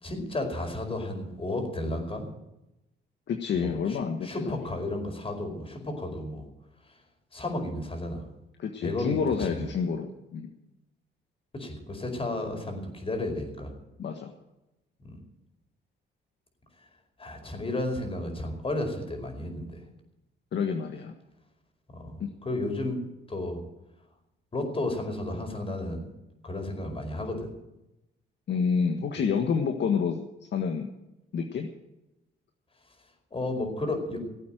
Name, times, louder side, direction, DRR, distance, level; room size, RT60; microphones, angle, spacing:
voice 1, 0.0-2.2 3.5-6.4 7.3-8.2 8.8-9.7 11.5-13.7 15.0-15.2 17.2-19.8 21.9-23.0 23.3-23.6 24.5-26.1 26.4-27.6 29.2-29.3 33.3-34.2, left 2 dB, 30° left, 4 dB, 4.9 m, -33 dB
voice 2, 3.3-4.6 8.6-10.5 14.0-14.3 20.5-21.1 22.2-22.3 28.5-30.2 30.5-30.9 31.3-31.7, left 6 dB, 60° left, 4 dB, 1.6 m, -28 dB
17.5 x 8.6 x 9.1 m, 0.94 s
cardioid pair, 90°, 20 cm